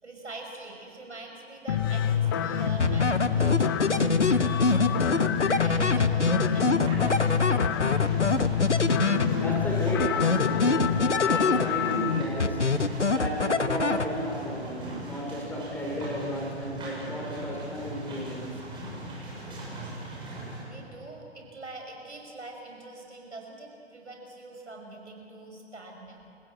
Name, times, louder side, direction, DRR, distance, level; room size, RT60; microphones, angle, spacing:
voice 1, 0.0-7.2 7.5-7.7 20.7-26.2, right 2 dB, 75° right, 1 dB, 6.1 m, -43 dB
sound 1, 1.7-12.2, left 9 dB, 20° left, 0.5 m, -27 dB
sound 2, 2.0-20.6, right 1 dB, 15° right, 6.9 m, -39 dB
sound 3, 2.8-9.6 10.0-12.0 12.4-14.4, left 3 dB, 85° left, 1.0 m, -25 dB
voice 2, 9.0-18.6, equal, 5° left, 0 dB, 3.0 m, -33 dB
28.5 x 16.0 x 8.3 m, 2.6 s
figure-of-eight pair, 125°, 35 cm